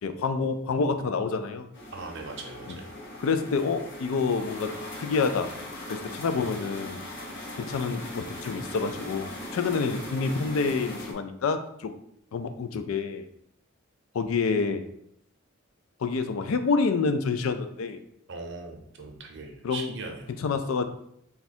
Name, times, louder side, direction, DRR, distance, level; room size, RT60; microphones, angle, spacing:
voice 1, 0.0-1.7 3.2-4.7 5.0-5.5 5.9-7.0 7.6-11.9 12.3-13.2 14.1-14.8 16.0-18.0 19.6-19.9 20.4-20.8, left 4 dB, 80° left, 8 dB, 0.4 m, -27 dB
sound 1, 1.7-11.1, left 1 dB, 60° left, 0.7 m, -39 dB
voice 2, 1.9-2.9 18.3-20.3, right 3 dB, 60° right, 2 dB, 0.7 m, -40 dB
3.5 x 2.3 x 4.2 m, 0.72 s
head